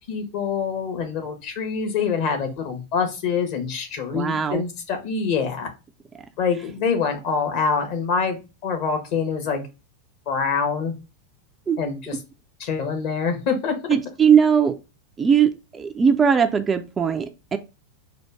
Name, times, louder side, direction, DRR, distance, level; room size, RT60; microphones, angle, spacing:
voice 1, 0.1-5.7 6.4-9.6 10.3-10.9 11.8-12.2 12.6-13.7, left 5 dB, 45° left, 5 dB, 1.2 m, -25 dB
voice 2, 4.1-4.6 11.7-11.8 13.9-14.8 15.2-17.6, right 7 dB, 20° right, 7 dB, 0.4 m, -19 dB
4.3 x 2.4 x 4.7 m, 0.28 s
figure-of-eight pair, 90°, 0 cm